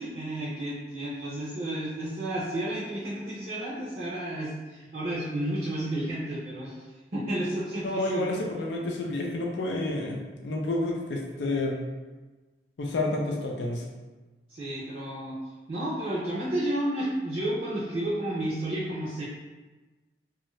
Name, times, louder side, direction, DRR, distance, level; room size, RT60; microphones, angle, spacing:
voice 1, 0.0-6.7 7.1-8.4 14.5-15.4 15.7-19.2, right 1 dB, 45° right, -8 dB, 0.6 m, -31 dB
voice 2, 7.8-11.8 12.8-13.8, left 2 dB, 80° left, -1 dB, 0.4 m, -30 dB
2.6 x 2.3 x 3.0 m, 1.2 s
head